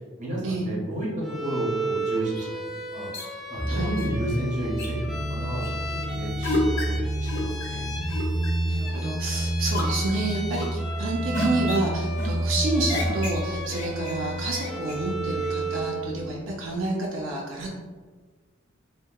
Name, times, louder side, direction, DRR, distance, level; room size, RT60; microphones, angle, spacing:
voice 1, 0.2-1.1 1.4-2.5 2.9-3.1 3.5-5.7 6.1-7.9, right 1 dB, 40° right, -4 dB, 0.7 m, -31 dB
Bowed string instrument, 1.2-16.1, right 2 dB, ahead, 0.3 m, -35 dB
sound 1, 2.4-2.5 3.1-3.3 4.0-4.1 4.8-4.9 5.6-5.7 6.4-6.8 7.3-7.7 8.1-8.5 8.9-9.3 9.7-10.1 10.6-10.9 11.3-11.8 12.2-12.6 12.9-13.4 13.7-14.2 14.5-15.0 15.4-15.8, left 1 dB, 65° left, 0.8 m, -31 dB
sound 2, 3.6-16.5, right 1 dB, 30° left, 0.7 m, -30 dB
voice 2, 3.7-4.0 8.7-17.7, right 2 dB, 80° right, -2 dB, 0.4 m, -29 dB
2.8 x 2.1 x 2.2 m, 1.4 s
head